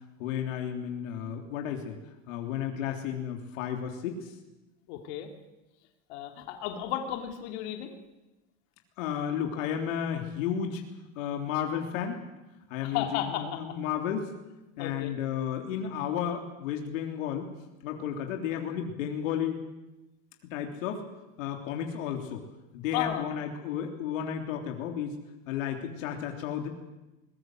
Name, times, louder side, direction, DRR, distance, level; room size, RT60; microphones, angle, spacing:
voice 1, 0.2-2.0 2.3-4.3 9.0-10.8 11.2-12.2 12.7-14.3 14.8-17.5 17.8-19.6 20.5-21.0 21.4-22.4 22.7-25.1 25.5-26.7, left 8 dB, 85° left, 3 dB, 3.5 m, -32 dB
voice 2, 4.9-5.3 6.1-7.9 12.8-13.6 14.8-15.1 22.9-23.3, left 11 dB, 60° left, 4 dB, 3.2 m, -33 dB
22.0 x 21.0 x 7.9 m, 1.0 s
supercardioid pair, 170°, 38 cm